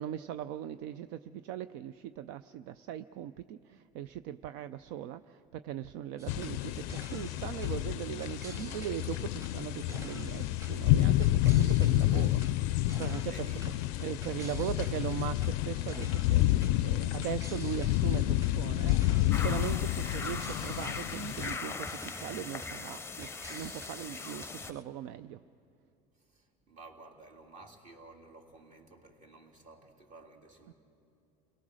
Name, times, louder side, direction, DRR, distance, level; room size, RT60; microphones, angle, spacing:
voice 1, 0.0-12.4 12.7-13.5 14.0-25.4 30.7-30.8, right 11 dB, 70° right, 13 dB, 0.5 m, -39 dB
sound 1, 6.2-24.8, equal, 15° right, 2.0 m, -50 dB
sound 2, 6.3-21.6, left 15 dB, 75° left, 0.4 m, -29 dB
voice 2, 12.1-12.5 13.3-15.2 26.1-30.7, right 3 dB, 45° right, 2 dB, 3.2 m, -54 dB
sound 3, 19.3-24.7, left 4 dB, 15° left, 0.7 m, -40 dB
29.5 x 18.0 x 6.4 m, 2.7 s
supercardioid pair, 95°, 19 cm